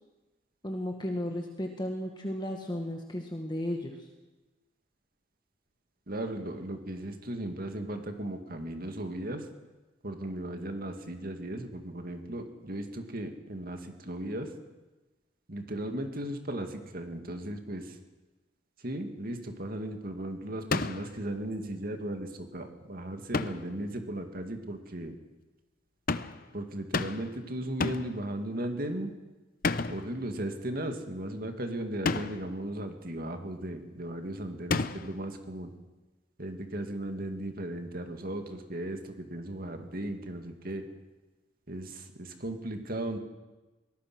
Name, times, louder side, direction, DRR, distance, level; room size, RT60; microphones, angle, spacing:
voice 1, 0.6-4.1, left 1 dB, 25° left, 3 dB, 1.8 m, -34 dB
voice 2, 6.1-9.5 10.0-14.5 15.5-18.0 18.8-25.1 26.5-29.1 29.9-35.7 36.4-40.8 41.7-43.2, right 1 dB, 50° right, 5 dB, 2.3 m, -36 dB
sound 1, 20.7-21.2 23.3-23.7 26.1-26.4 26.9-27.4 27.8-28.2 29.6-30.1 32.0-32.5 34.7-35.2, left 3 dB, 50° left, 0.8 m, -31 dB
23.5 x 18.5 x 6.3 m, 1.1 s
head